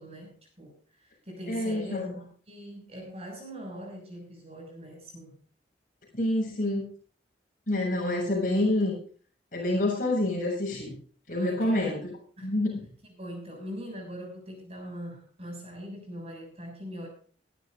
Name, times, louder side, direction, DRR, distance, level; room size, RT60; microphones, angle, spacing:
voice 1, 0.0-5.4 11.3-11.9 12.4-12.5 13.2-17.1, equal, 35° right, 1 dB, 6.8 m, -42 dB
voice 2, 1.5-2.1 6.1-6.8 7.7-8.9 9.5-10.9 11.3-12.1 12.4-12.8, left 1 dB, 45° left, -1 dB, 7.1 m, -27 dB
22.0 x 12.0 x 2.7 m, 0.43 s
head